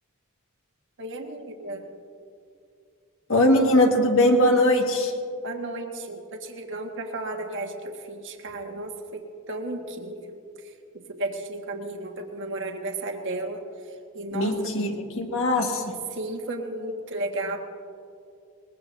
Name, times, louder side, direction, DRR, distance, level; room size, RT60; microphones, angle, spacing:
voice 1, 1.0-1.9 5.4-10.4 11.1-13.6 14.1-14.6 16.1-17.6, right 2 dB, 55° right, 2 dB, 1.5 m, -33 dB
voice 2, 3.3-5.1 14.3-14.9 15.2-15.8, left 1 dB, 60° left, 2 dB, 1.7 m, -20 dB
22.0 x 21.0 x 2.7 m, 2.5 s
head